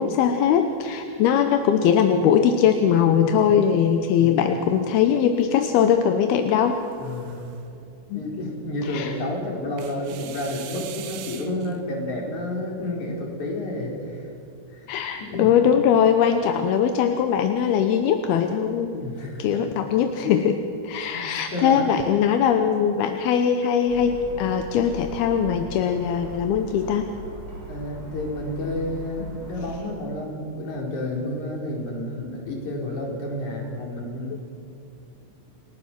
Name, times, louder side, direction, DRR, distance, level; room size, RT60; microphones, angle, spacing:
voice 1, 0.0-6.8 8.1-8.5 8.9-9.1 14.9-19.0 19.4-20.6 20.8-27.1, left 8 dB, 75° left, 6 dB, 2.5 m, -21 dB
sound 1, 4.7-5.6 6.6-7.7 9.8-11.8, right 10 dB, 70° right, 3.1 m, -42 dB
voice 2, 7.0-7.4 8.1-14.3 14.7-15.5 19.0-19.7 21.1-21.2 21.5-21.9 27.7-34.4, left 1 dB, 45° left, -1 dB, 5.2 m, -30 dB
sound 2, 23.9-29.8, left 1 dB, 10° right, 7.1 m, -39 dB
29.0 x 19.0 x 6.0 m, 2.7 s
omnidirectional pair, 5.3 m